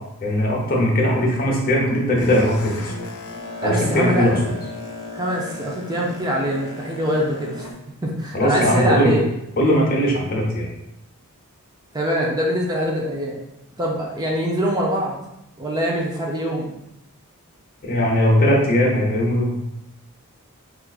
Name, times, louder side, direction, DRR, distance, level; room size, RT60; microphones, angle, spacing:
voice 1, 0.2-2.9 3.6-4.4 8.3-9.1 9.6-10.7 17.8-19.6, equal, 45° left, -2 dB, 0.8 m, -19 dB
Boat Water vehicle, 1.7-7.7, left 2 dB, 75° left, 0.6 m, -36 dB
voice 2, 3.6-4.4 5.1-7.7 8.0-9.3 11.9-13.4 13.8-15.2 15.6-16.7, equal, 20° right, -3 dB, 0.5 m, -23 dB
4.4 x 2.4 x 2.3 m, 0.85 s
head